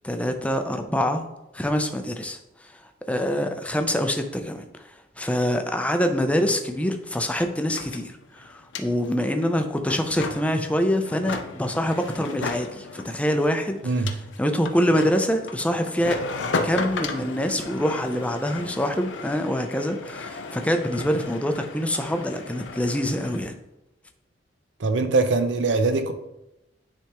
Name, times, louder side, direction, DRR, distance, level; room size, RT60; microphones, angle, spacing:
voice 1, 0.0-1.2 1.5-2.8 3.1-4.9 5.2-13.8 14.4-16.2 16.6-23.5, equal, 5° left, 6 dB, 0.5 m, -25 dB
sound 1, 6.6-6.7 6.9-23.5, left 4 dB, 75° left, 0.6 m, -35 dB
voice 2, 24.8-26.1, right 3 dB, 70° right, 8 dB, 0.6 m, -22 dB
10.0 x 3.4 x 3.0 m, 0.91 s
head